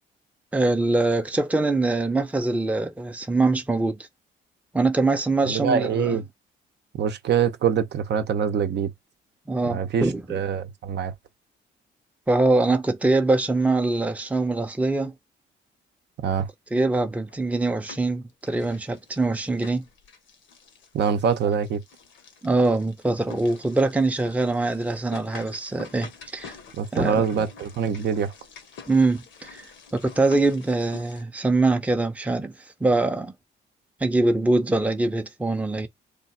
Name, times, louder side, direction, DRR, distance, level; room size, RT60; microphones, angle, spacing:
voice 1, 0.5-4.0 4.7-6.2 9.5-10.4 12.3-15.1 16.7-19.8 22.4-26.5 26.9-27.4 28.9-29.6 29.9-32.5 32.8-33.3 34.0-35.9, right 2 dB, 5° right, 0.6 m, -23 dB
voice 2, 5.4-6.2 7.0-8.9 9.7-11.1 16.2-16.5 20.9-21.8 26.8-28.3, right 7 dB, 60° right, 0.7 m, -24 dB
sound 1, 17.3-18.2 18.5-31.2, left 5 dB, 70° left, 0.9 m, -47 dB
3.3 x 2.4 x 4.2 m
cardioid pair, 90°, 20 cm